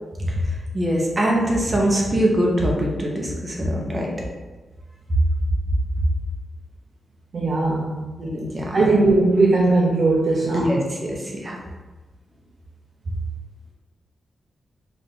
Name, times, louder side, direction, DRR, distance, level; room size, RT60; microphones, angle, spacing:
voice 1, 0.7-4.1 8.2-8.9 10.5-11.6, equal, 25° right, -2 dB, 0.9 m, -23 dB
voice 2, 7.3-8.1 8.7-10.7, right 2 dB, 45° right, -3 dB, 0.5 m, -19 dB
4.8 x 2.5 x 3.8 m, 1.2 s
wide cardioid pair, 135°, 0 cm